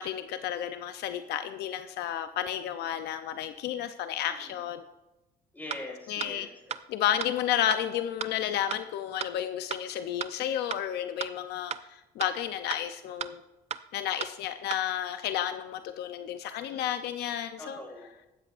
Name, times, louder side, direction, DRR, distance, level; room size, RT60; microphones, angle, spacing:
voice 1, 0.0-4.8 6.1-6.5 6.9-13.4 13.9-17.8, left 10 dB, 75° left, 9 dB, 0.6 m, -32 dB
voice 2, 5.5-6.8 16.7-16.9 17.6-18.1, left 2 dB, 10° left, -1 dB, 4.7 m, -43 dB
sound 1, 5.7-5.8 6.2-6.3 6.7-6.8 7.2-7.3 7.7-7.8 8.2-8.3 8.7-8.8 9.2-9.3 9.7-9.8 10.2-10.3 10.7-10.8 11.2-11.3 11.7-11.8 12.2-12.3 12.7-12.8 13.2-13.3 13.7-13.8 14.2-14.3 14.7-14.8, right 9 dB, 40° right, 0.5 m, -33 dB
16.5 x 13.0 x 2.5 m, 1.0 s
cardioid pair, 110°, 17 cm